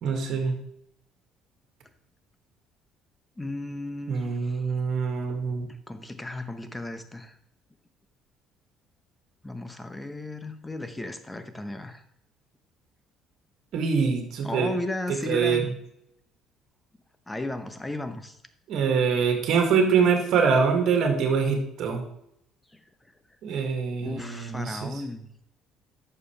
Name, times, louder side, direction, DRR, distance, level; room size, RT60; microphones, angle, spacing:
voice 1, 0.0-0.6 4.1-5.7 13.7-14.7 15.3-15.7 18.7-22.0 23.4-24.9, right 5 dB, 65° right, 3 dB, 2.2 m, -24 dB
voice 2, 3.4-4.6 5.9-7.4 9.4-12.0 14.4-15.7 17.3-18.4 24.0-25.3, left 2 dB, 10° left, 9 dB, 1.0 m, -35 dB
11.0 x 6.9 x 3.4 m, 0.76 s
cardioid pair, 95°, 0 cm